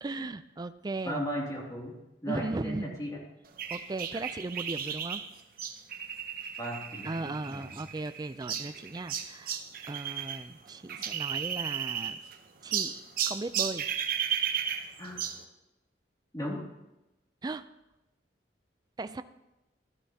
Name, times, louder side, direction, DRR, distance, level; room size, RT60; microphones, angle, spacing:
voice 1, 0.0-1.2 2.3-3.0 3.7-5.2 7.0-9.6 9.9-12.2 12.6-13.9 17.4-17.6 19.0-19.2, right 2 dB, 20° right, 11 dB, 0.4 m, -37 dB
voice 2, 1.0-3.2 6.6-7.7 15.0-15.2 16.3-16.7, equal, 20° left, -3 dB, 2.4 m, -36 dB
sound 1, 3.6-10.4 10.7-12.3 12.7-15.4, right 8 dB, 50° right, 0.8 m, -34 dB
14.5 x 12.0 x 2.8 m, 0.99 s
head